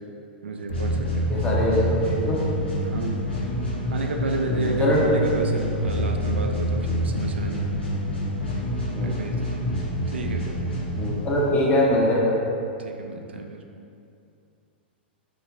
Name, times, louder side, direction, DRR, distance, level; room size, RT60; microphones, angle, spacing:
voice 1, 0.4-1.3 2.8-3.3 3.9-7.7 9.0-9.7 10.1-10.6 12.8-13.6, right 3 dB, 80° right, 3 dB, 0.3 m, -31 dB
sound 1, 0.7-11.6, equal, 85° left, 1.1 m, -27 dB
voice 2, 1.3-2.4 4.5-5.2 9.0-9.1 11.0-12.3, left 1 dB, 20° left, -4 dB, 0.7 m, -22 dB
5.0 x 2.1 x 2.4 m, 2.6 s
hypercardioid pair, 110°, 6 cm